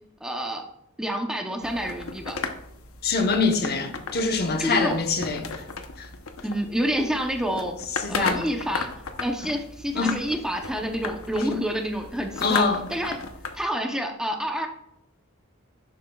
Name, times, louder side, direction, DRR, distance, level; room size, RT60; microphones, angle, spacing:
voice 1, 0.2-0.6 1.0-2.4 4.6-4.9 6.4-7.8 8.1-8.9 9.2-13.2 13.5-14.7, equal, 5° right, 0.7 m, -28 dB
sound 1, 1.6-13.6, left 4 dB, 90° left, 0.9 m, -36 dB
voice 2, 3.0-5.6 6.0-6.1 8.0-8.5 9.9-10.2 11.5-11.6 12.4-12.9, left 4 dB, 50° left, 1.0 m, -24 dB
11.0 x 7.8 x 2.3 m
head